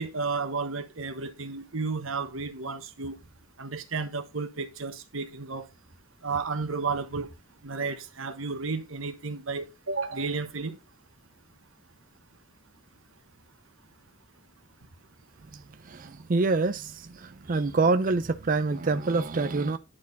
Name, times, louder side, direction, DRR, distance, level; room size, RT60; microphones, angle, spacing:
voice 1, 0.0-3.2 3.6-5.7 6.2-7.3 7.6-10.8, right 4 dB, 70° right, 1.3 m, -32 dB
voice 2, 15.5-19.8, right 3 dB, 40° right, 0.5 m, -26 dB
10.5 x 4.4 x 3.9 m
head